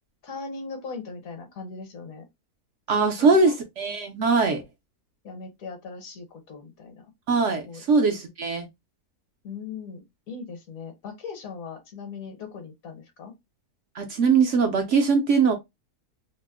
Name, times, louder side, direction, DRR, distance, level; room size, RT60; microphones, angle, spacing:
voice 1, 0.2-2.2 2.9-3.5 5.2-7.0 7.7-7.8 9.4-13.3, left 5 dB, 65° left, 1.2 m, -39 dB
voice 2, 2.9-4.6 7.3-8.7 13.9-15.5, right 4 dB, 65° right, 0.8 m, -21 dB
2.8 x 2.0 x 3.4 m
omnidirectional pair, 1.6 m